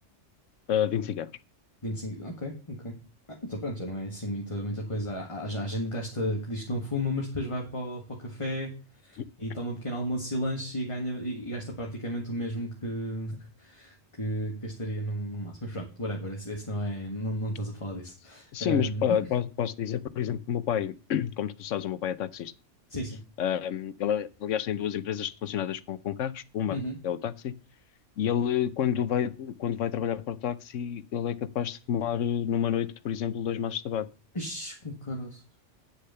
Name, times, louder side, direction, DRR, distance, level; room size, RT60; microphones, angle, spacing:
voice 1, 0.7-1.3 9.2-9.3 18.5-22.5 23.4-26.8 27.0-27.5 28.2-34.1, left 9 dB, 80° left, 16 dB, 1.1 m, -29 dB
voice 2, 1.8-3.0 3.4-8.7 9.0-19.2 22.9-23.2 26.7-27.0 34.3-35.4, equal, 25° left, -1 dB, 1.9 m, -33 dB
10.0 x 6.7 x 5.7 m, 0.34 s
omnidirectional pair, 1.3 m